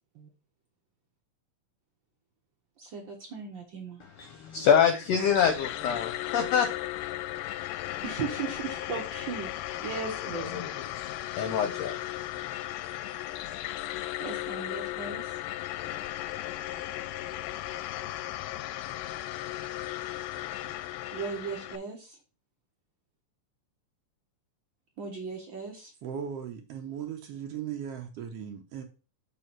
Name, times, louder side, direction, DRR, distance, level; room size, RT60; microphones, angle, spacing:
voice 1, 2.8-4.0 5.8-5.9 8.0-9.5 9.8-10.7 14.2-15.4 15.8-16.0 20.6-20.7 21.1-22.2 25.0-25.9, right 5 dB, 85° right, 1.0 m, -37 dB
voice 2, 4.2-6.7 10.4-10.7 11.4-11.9, left 7 dB, 70° left, 1.6 m, -25 dB
sound 1, 4.8-21.8, left 15 dB, 90° left, 2.2 m, -36 dB
voice 3, 26.0-28.8, right 8 dB, 70° right, 1.5 m, -37 dB
6.6 x 3.4 x 5.9 m
omnidirectional pair, 3.7 m